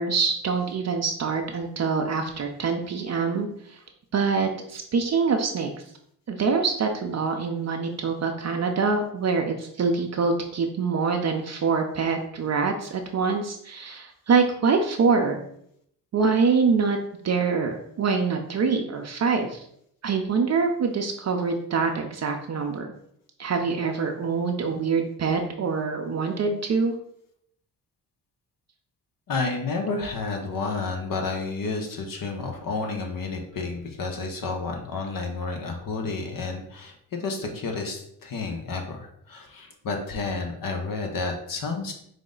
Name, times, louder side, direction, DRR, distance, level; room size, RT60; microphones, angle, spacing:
voice 1, 0.0-3.8 4.1-5.7 6.3-15.4 16.1-17.0 17.2-19.6 20.0-22.9 23.4-26.9, right 5 dB, 40° right, 3 dB, 0.6 m, -25 dB
voice 2, 29.3-36.9 37.2-41.9, left 3 dB, 55° left, 3 dB, 0.9 m, -30 dB
4.9 x 2.1 x 3.8 m, 0.70 s
cardioid pair, 70°, 41 cm